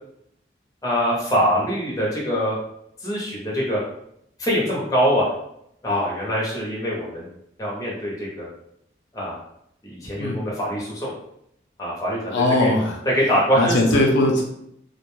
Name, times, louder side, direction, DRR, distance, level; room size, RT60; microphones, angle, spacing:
voice 1, 0.8-2.6 3.0-3.8 4.4-5.3 5.8-7.3 7.6-8.5 9.1-9.4 9.8-11.1 11.8-12.7 13.1-14.0, equal, 20° left, -5 dB, 0.7 m, -23 dB
voice 2, 12.3-13.0 13.5-14.4, left 2 dB, 80° left, -1 dB, 0.5 m, -19 dB
2.4 x 2.1 x 3.0 m, 0.76 s
head